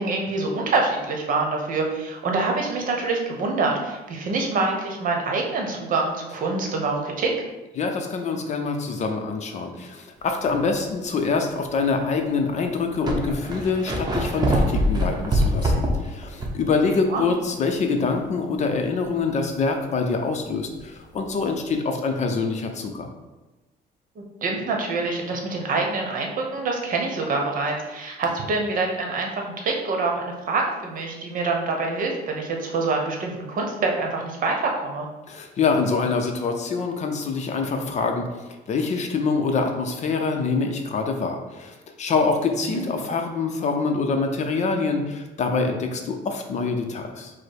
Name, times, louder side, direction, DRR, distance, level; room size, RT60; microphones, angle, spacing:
voice 1, 0.0-7.3 17.1-17.2 24.2-35.1 42.7-42.8, right 3 dB, 55° right, 1 dB, 0.9 m, -26 dB
voice 2, 7.8-23.1 35.3-38.3 38.7-47.3, left 4 dB, 45° left, 4 dB, 0.6 m, -25 dB
sound 1, 10.5-10.8 11.4-11.5 12.4-12.5 12.7-16.7 17.0-17.1 20.7-20.8, equal, 25° right, 0.8 m, -23 dB
4.8 x 2.0 x 4.5 m, 1.1 s
cardioid pair, 110°, 17 cm